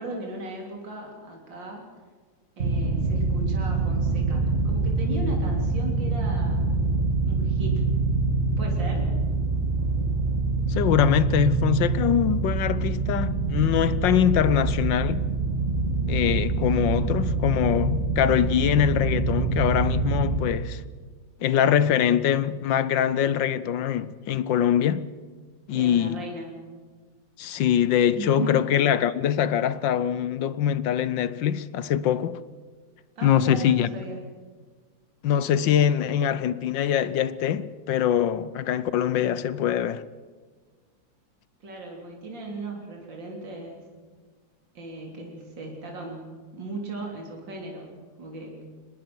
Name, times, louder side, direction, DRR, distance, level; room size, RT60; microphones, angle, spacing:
voice 1, 0.0-1.8 2.6-6.7 7.2-7.8 8.6-9.1 25.7-26.5 28.1-28.5 33.2-34.2 41.6-43.9 44.7-48.7, right 2 dB, 70° right, 4.0 m, -37 dB
boat motor bass element India, 2.6-20.4, right 3 dB, 40° right, 2.3 m, -25 dB
voice 2, 10.7-15.3 16.1-20.8 21.4-25.1 25.7-26.2 27.4-32.4 33.2-33.9 35.2-40.0, left 9 dB, 75° left, 1.5 m, -23 dB
23.5 x 20.0 x 6.1 m
omnidirectional pair, 2.1 m